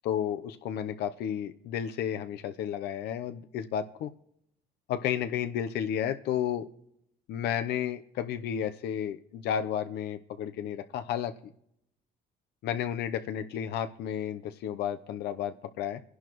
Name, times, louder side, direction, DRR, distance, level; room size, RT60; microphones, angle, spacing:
voice 1, 0.0-4.1 4.9-6.7 7.3-11.5 12.6-16.0, left 9 dB, 75° left, 9 dB, 0.8 m, -32 dB
25.0 x 11.0 x 3.1 m, 0.76 s
cardioid pair, 110°, 17 cm